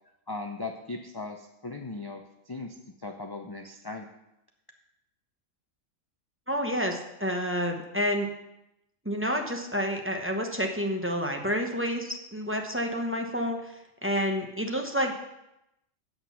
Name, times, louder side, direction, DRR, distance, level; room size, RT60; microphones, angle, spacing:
voice 1, 0.3-4.1, left 3 dB, 35° left, 3 dB, 0.4 m, -38 dB
voice 2, 6.5-8.3 9.0-15.1, equal, 10° right, 2 dB, 0.8 m, -29 dB
8.8 x 7.7 x 5.7 m, 0.87 s
omnidirectional pair, 1.4 m